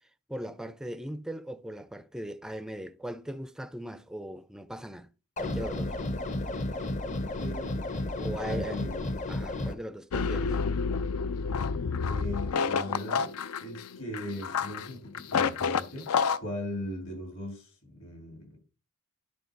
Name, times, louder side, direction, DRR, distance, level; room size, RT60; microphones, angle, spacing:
voice 1, 0.3-5.1 5.4-5.9 8.2-8.8 9.3-10.6, right 1 dB, 5° right, 0.3 m, -39 dB
sound 1, 5.4-9.7, left 2 dB, 35° left, 0.7 m, -32 dB
voice 2, 7.0-7.8 8.1-9.0 12.1-18.6, left 1 dB, 65° left, 3.0 m, -39 dB
sound 2, 10.1-16.4, left 5 dB, 85° left, 0.5 m, -29 dB
10.5 x 3.5 x 5.2 m
head